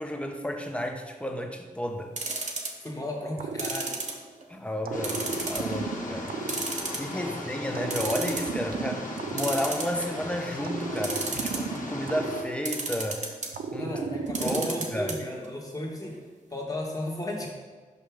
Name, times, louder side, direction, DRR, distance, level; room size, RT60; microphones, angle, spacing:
voice 1, 0.0-2.2 4.5-6.3 6.9-13.3 13.7-15.2, equal, 10° left, 4 dB, 0.8 m, -32 dB
sound 1, 2.2-2.9 3.6-4.6 5.0-5.7 6.1-6.2 6.5-7.3 7.6-7.7 7.9-8.5 9.4-10.3 11.0-11.8 12.7-13.5 14.3-15.1 15.4-15.5 15.8-15.9, right 3 dB, 55° right, 1.0 m, -32 dB
voice 2, 2.8-4.0 7.1-7.3 13.8-16.2 16.5-17.5, left 1 dB, 25° left, -1 dB, 1.5 m, -34 dB
sound 2, 3.4-4.4 4.8-7.3 7.7-10.2 10.6-13.1 13.5-15.0, right 4 dB, 85° right, 0.4 m, -35 dB
sound 3, 4.9-12.4, left 2 dB, 65° left, 1.1 m, -38 dB
5.4 x 5.4 x 3.5 m, 1.5 s
cardioid pair, 50°, 15 cm